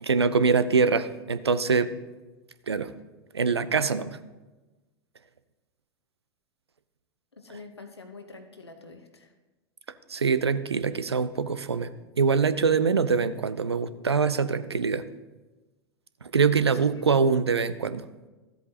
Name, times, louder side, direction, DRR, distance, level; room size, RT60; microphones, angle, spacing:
voice 1, 0.0-1.9 2.7-2.9 3.3-4.1 10.1-11.9 12.2-15.0 16.2-18.0, right 5 dB, 90° right, 14 dB, 0.5 m, -24 dB
voice 2, 7.4-9.3 16.8-17.0, left 3 dB, 90° left, 6 dB, 1.0 m, -46 dB
13.5 x 8.0 x 2.8 m, 1.2 s
figure-of-eight pair, 95°, 13 cm